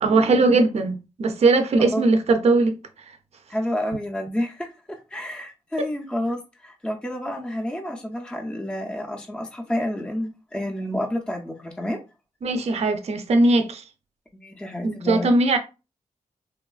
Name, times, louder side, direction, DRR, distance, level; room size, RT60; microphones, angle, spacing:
voice 1, 0.0-3.2 5.8-5.9 12.4-13.9 14.8-15.6, right 3 dB, 55° right, 0.4 m, -20 dB
voice 2, 3.5-12.0 14.3-15.3, left 1 dB, 5° left, 0.4 m, -29 dB
2.9 x 2.2 x 2.3 m
cardioid pair, 70°, 13 cm